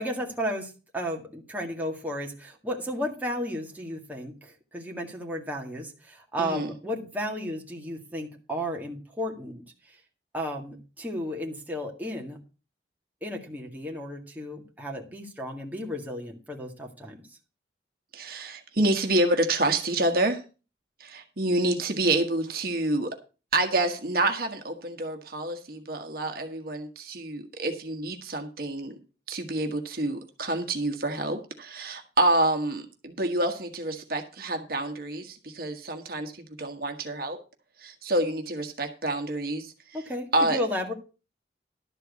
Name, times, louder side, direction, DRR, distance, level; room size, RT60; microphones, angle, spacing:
voice 1, 0.0-10.0 10.3-12.4 13.2-17.3 39.9-40.9, equal, 10° right, 0 dB, 1.8 m, -33 dB
voice 2, 6.4-6.7 18.1-20.4 21.0-23.2 23.5-28.9 29.3-37.4 37.8-39.7 40.3-40.6, right 2 dB, 55° right, 5 dB, 1.4 m, -28 dB
12.0 x 4.6 x 8.2 m, 0.34 s
head